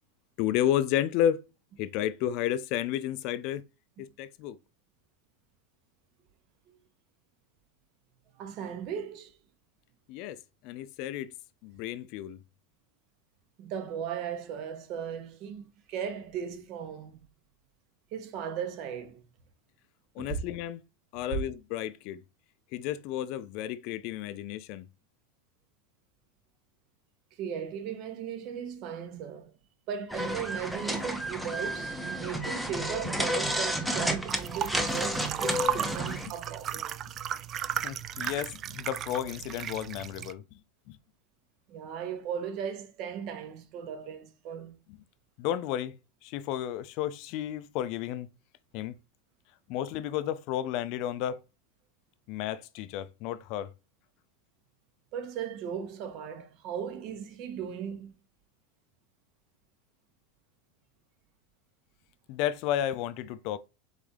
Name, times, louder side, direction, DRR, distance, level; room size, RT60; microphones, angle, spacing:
voice 1, 0.4-1.4 1.8-3.6 4.0-4.6 10.1-10.4 10.6-11.3 11.6-12.4 20.2-20.8 21.1-22.2 22.7-24.9 37.8-40.4 40.9-41.0 44.9-45.0 45.4-46.0 46.2-48.3 48.7-49.0 49.7-51.4 52.3-53.7 62.3-63.6, left 11 dB, 55° left, 0.4 m, -32 dB
voice 2, 8.4-9.3 13.6-17.2 18.1-19.2 20.2-20.4 27.4-29.5 29.9-36.9 41.7-44.8 55.1-58.1, right 8 dB, 50° right, 0.9 m, -37 dB
sound 1, 30.1-36.3, equal, ahead, 0.8 m, -31 dB
sound 2, 34.3-40.3, right 10 dB, 35° right, 0.3 m, -35 dB
4.0 x 3.3 x 3.6 m
supercardioid pair, 130°, 0 cm